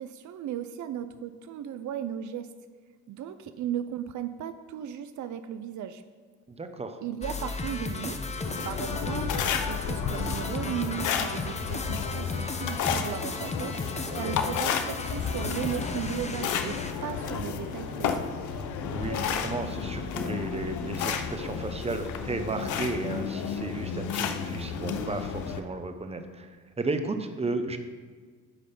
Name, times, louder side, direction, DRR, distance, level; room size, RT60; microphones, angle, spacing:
voice 1, 0.0-2.5 3.1-6.0 7.0-8.3 8.6-13.7 14.1-18.2, right 9 dB, 70° right, 10 dB, 0.6 m, -36 dB
voice 2, 6.5-7.0 14.0-14.3 18.9-27.8, right 3 dB, 20° right, 7 dB, 0.9 m, -34 dB
sound 1, 7.2-16.9, left 3 dB, 20° left, 0.9 m, -34 dB
sound 2, 8.4-25.6, left 7 dB, 80° left, 0.8 m, -32 dB
Bowed string instrument, 14.6-20.1, right 4 dB, 45° right, 1.4 m, -47 dB
10.0 x 6.3 x 5.3 m, 1.5 s
cardioid pair, 90°, 30 cm